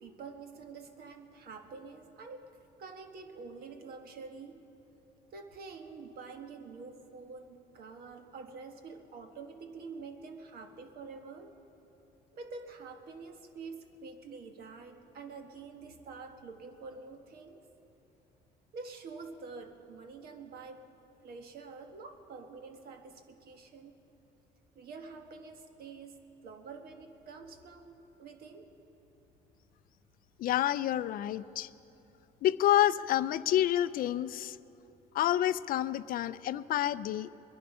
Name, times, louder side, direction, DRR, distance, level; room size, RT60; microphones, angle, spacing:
voice 1, 0.0-4.6 5.3-11.5 12.3-17.7 18.7-20.9 21.2-24.0 24.7-28.7, right 4 dB, 65° right, 5 dB, 1.4 m, -47 dB
voice 2, 30.4-31.7 32.4-34.6 35.1-37.3, left 12 dB, 60° left, 16 dB, 0.4 m, -28 dB
22.5 x 11.0 x 5.5 m, 3.0 s
cardioid pair, 110°, 17 cm